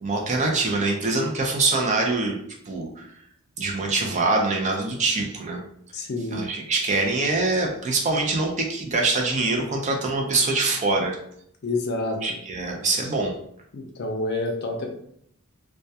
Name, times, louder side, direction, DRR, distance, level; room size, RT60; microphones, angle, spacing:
voice 1, 0.0-2.4 2.7-3.1 3.6-5.6 6.3-11.2 12.2-13.3, right 3 dB, 35° right, 1 dB, 0.4 m, -24 dB
voice 2, 5.9-6.4 11.6-12.2 13.7-14.9, left 2 dB, 50° left, 2 dB, 0.4 m, -28 dB
2.2 x 2.1 x 2.7 m, 0.69 s
head